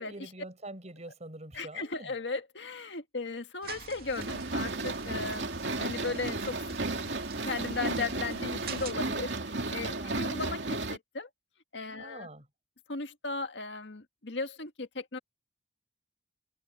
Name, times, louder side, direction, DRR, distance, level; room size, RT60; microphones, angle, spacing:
voice 1, 0.0-2.1 10.0-10.3 12.0-12.5, right 2 dB, 40° right, 6.2 m, -45 dB
voice 2, 1.5-5.5 5.8-6.6 7.4-11.3 11.7-12.3 12.9-15.2, left 3 dB, 85° left, 1.8 m, -36 dB
sound 1, 3.6-8.9, right 6 dB, 60° right, 2.6 m, -46 dB
sound 2, 4.2-11.0, right 2 dB, 80° right, 2.6 m, -34 dB
head